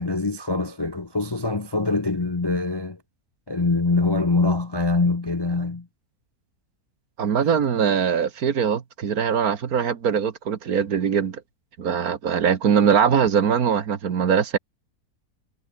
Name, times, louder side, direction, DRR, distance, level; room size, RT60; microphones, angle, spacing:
voice 1, 0.0-3.0 3.5-5.9, left 3 dB, 25° left, 0.6 m, -24 dB
voice 2, 7.2-11.4 11.8-14.6, right 7 dB, 70° right, 1.9 m, -21 dB
omnidirectional pair, 1.6 m